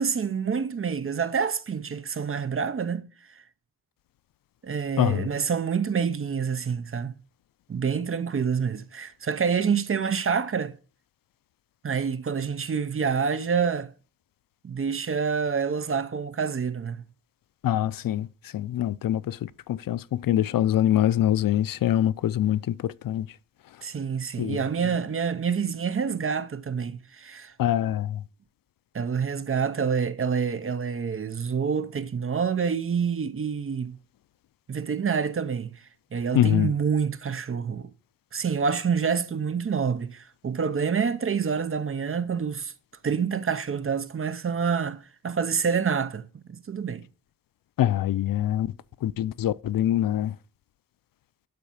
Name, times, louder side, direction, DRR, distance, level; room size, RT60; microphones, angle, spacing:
voice 1, 0.0-3.1 4.6-7.1 7.7-10.7 11.8-13.9 14.6-17.0 23.8-27.5 28.9-34.0 34.7-35.7 36.1-37.9 38.3-42.7 43.0-47.0, right 6 dB, 40° right, 0.7 m, -27 dB
voice 2, 5.0-5.3 17.6-23.3 24.4-24.6 27.6-28.2 36.3-36.7 47.8-48.7 49.0-50.3, left 12 dB, 75° left, 0.5 m, -24 dB
12.0 x 4.1 x 7.0 m
wide cardioid pair, 165°, 34 cm